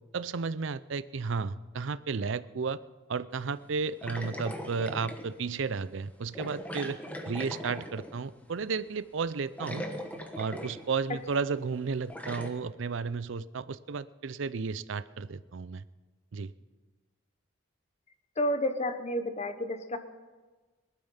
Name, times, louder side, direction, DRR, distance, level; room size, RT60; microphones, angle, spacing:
voice 1, 0.1-2.8 3.1-7.0 7.3-9.8 10.4-15.8 16.3-16.5, right 5 dB, 65° right, 15 dB, 0.5 m, -33 dB
sound 1, 4.0-5.3 6.4-8.2 9.3-9.4 9.6-11.0 11.3-11.4 12.1-12.5, equal, 5° left, 1.1 m, -39 dB
voice 2, 18.4-20.0, left 1 dB, 35° left, 9 dB, 1.0 m, -30 dB
19.0 x 12.5 x 5.6 m, 1.3 s
head